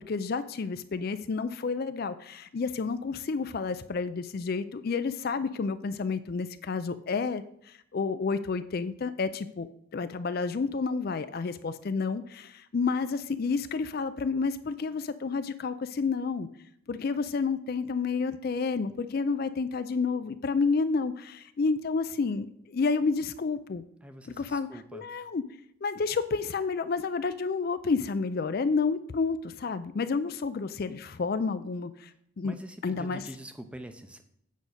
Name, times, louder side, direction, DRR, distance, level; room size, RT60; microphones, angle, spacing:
voice 1, 0.0-16.5 16.9-23.8 24.4-25.4 25.8-32.1 32.4-32.6 32.8-33.2, left 4 dB, 45° left, 12 dB, 0.4 m, -30 dB
voice 2, 24.0-25.0 32.4-34.2, right 1 dB, 5° right, 7 dB, 0.6 m, -44 dB
8.4 x 5.0 x 6.5 m, 0.72 s
head